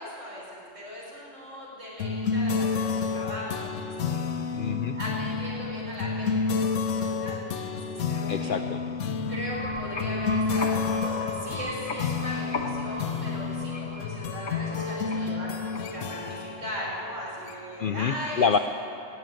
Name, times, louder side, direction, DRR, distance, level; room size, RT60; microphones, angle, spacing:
voice 1, 0.0-4.6 4.9-8.5 9.3-18.6, equal, 80° right, -5 dB, 4.6 m, -38 dB
sound 1, 2.0-17.9, left 5 dB, 85° left, 1.1 m, -30 dB
voice 2, 4.5-5.0 8.3-8.8 17.8-18.6, left 6 dB, 60° left, 8 dB, 0.5 m, -26 dB
sound 2, 9.3-16.1, left 2 dB, 45° left, 1.3 m, -37 dB
18.5 x 7.0 x 9.0 m, 2.8 s
omnidirectional pair, 1.3 m